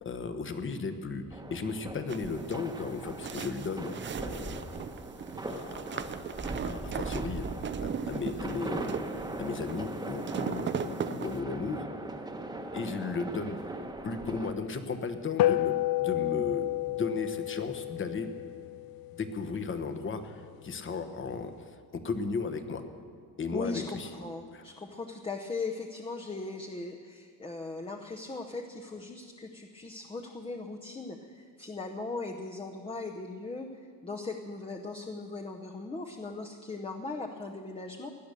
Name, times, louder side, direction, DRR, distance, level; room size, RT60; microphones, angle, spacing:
voice 1, 0.0-4.8 5.5-7.5 7.8-11.8 12.7-13.6 14.0-18.3 19.1-22.8 23.4-24.1 24.5-24.6, left 4 dB, 30° left, 9 dB, 1.2 m, -35 dB
sound 1, 1.3-14.5, right 2 dB, 10° right, 1.1 m, -40 dB
sound 2, 2.1-11.4, right 7 dB, 30° right, 0.6 m, -38 dB
sound 3, 15.4-20.0, left 15 dB, 65° left, 0.5 m, -30 dB
voice 2, 23.5-38.1, left 3 dB, 15° left, 2 dB, 0.8 m, -39 dB
17.0 x 10.5 x 6.8 m, 2.1 s
cardioid pair, 120°, 38 cm